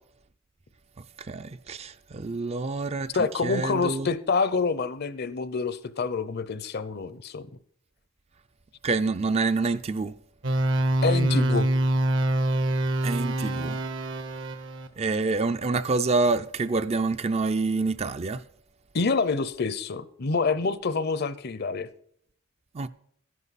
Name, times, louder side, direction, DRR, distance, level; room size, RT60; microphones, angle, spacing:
voice 1, 1.2-3.1 3.4-4.1 8.8-10.1 13.0-13.8 15.0-18.4 22.7-22.9, right 3 dB, 30° right, 0.4 m, -27 dB
voice 2, 3.1-7.5 11.0-11.7 18.9-21.9, left 4 dB, 50° left, 0.6 m, -27 dB
sound 1, 10.4-14.9, right 1 dB, 60° right, 0.9 m, -25 dB
13.0 x 11.0 x 4.1 m
head